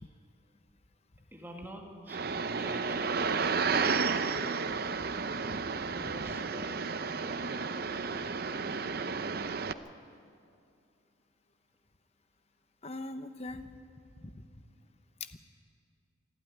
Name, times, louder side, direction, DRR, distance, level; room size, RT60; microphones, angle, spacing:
voice 1, 1.3-2.2 2.5-4.3 5.9-8.2, equal, 10° right, 1 dB, 1.9 m, -47 dB
sound 1, 2.1-9.7, right 5 dB, 50° right, 0.6 m, -32 dB
voice 2, 12.8-13.7 14.2-14.3 15.2-15.4, left 2 dB, 30° left, 9 dB, 0.9 m, -41 dB
26.0 x 12.0 x 9.4 m, 2.4 s
head